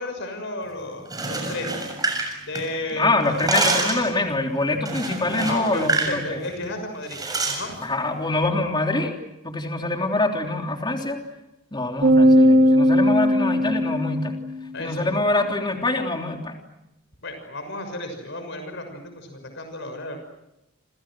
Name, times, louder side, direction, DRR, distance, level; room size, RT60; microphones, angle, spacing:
voice 1, 0.0-1.8 2.4-3.4 5.4-7.7 14.7-15.0 15.3-15.5 17.2-20.2, left 1 dB, 60° left, 6 dB, 6.3 m, -33 dB
sound 1, 1.0-2.9 3.2-4.1 4.9-6.2 6.4-6.6 7.1-7.6, right 3 dB, 20° right, 6.9 m, -26 dB
voice 2, 2.9-6.4 7.8-9.2 9.4-11.2 11.7-14.4 14.8-16.6, left 2 dB, 20° left, 2 dB, 3.4 m, -25 dB
sound 2, 12.0-14.5, equal, 50° right, 3.9 m, -17 dB
30.0 x 28.0 x 6.3 m, 0.89 s
head